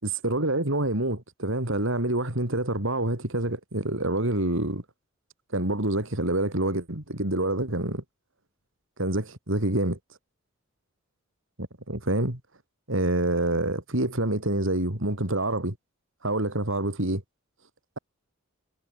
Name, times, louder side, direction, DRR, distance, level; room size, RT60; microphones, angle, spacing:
voice 1, 0.0-4.8 5.5-8.0 9.0-10.0 11.9-12.4 12.9-15.7 16.2-17.2, right 1 dB, 65° right, 4.1 m, -27 dB
head